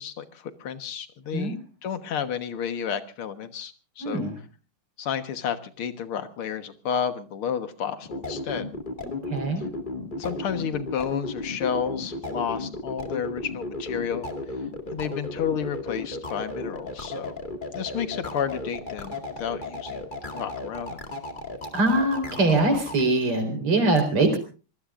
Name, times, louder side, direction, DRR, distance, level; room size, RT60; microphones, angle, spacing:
voice 1, 0.0-1.6 1.8-4.2 5.0-8.7 10.2-14.3 14.9-17.4 17.7-21.0, left 8 dB, 75° left, 10 dB, 2.2 m, -31 dB
voice 2, 4.0-4.3 9.0-9.6 21.7-24.4, right 2 dB, 85° right, 6 dB, 5.2 m, -23 dB
sound 1, 8.0-23.0, left 2 dB, 25° left, 2.1 m, -34 dB
25.5 x 19.0 x 2.5 m, 0.35 s
omnidirectional pair, 2.4 m